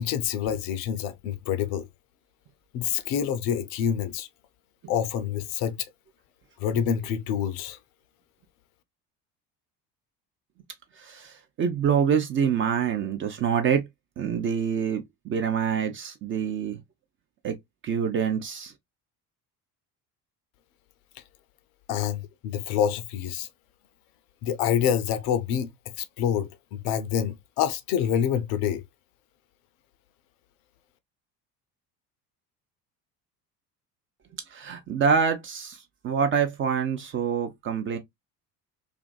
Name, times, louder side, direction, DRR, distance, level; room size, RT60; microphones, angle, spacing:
voice 1, 0.0-1.9 2.7-4.3 4.9-5.8 6.6-7.8 21.9-23.5 24.4-25.7 26.0-28.8, left 9 dB, 50° left, 0.5 m, -27 dB
voice 2, 11.0-13.9 14.2-16.8 17.4-17.5 17.8-18.7 34.5-35.8 36.0-38.0, right 7 dB, 30° right, 0.4 m, -26 dB
2.4 x 2.4 x 2.2 m
figure-of-eight pair, 60°, 48 cm